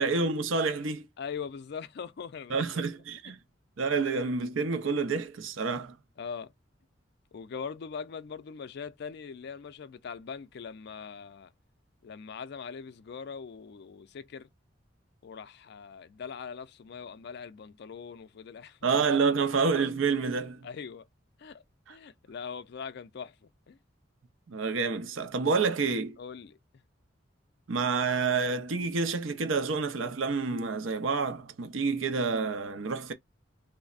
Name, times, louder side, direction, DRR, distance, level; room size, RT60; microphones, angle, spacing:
voice 1, 0.0-1.1 2.5-3.4 3.8-6.0 18.8-20.7 21.9-22.0 24.5-26.2 27.7-33.1, right 4 dB, 85° right, 0.6 m, -28 dB
voice 2, 1.2-2.9 6.2-6.5 7.3-11.5 12.0-14.5 15.2-18.9 20.6-21.1 21.4-21.6 21.9-23.3 23.7-23.8 26.2-26.6, left 6 dB, 60° left, 0.4 m, -41 dB
3.2 x 2.0 x 2.3 m
head